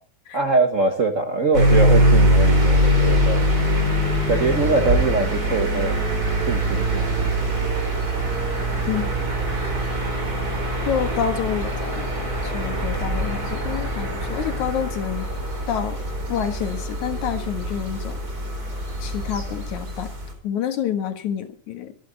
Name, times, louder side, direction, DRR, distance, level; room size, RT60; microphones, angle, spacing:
voice 1, 0.3-3.4 4.3-5.9 6.5-7.3, right 3 dB, 85° right, 5 dB, 0.7 m, -22 dB
sound 1, 1.5-20.3, equal, 30° right, 4.1 m, -22 dB
voice 2, 10.9-12.1 12.4-15.3 15.7-16.0 16.3-18.2 19.0-20.1 20.4-21.9, left 9 dB, 75° left, 7 dB, 3.0 m, -28 dB
24.5 x 11.5 x 4.0 m, 0.40 s
omnidirectional pair, 3.4 m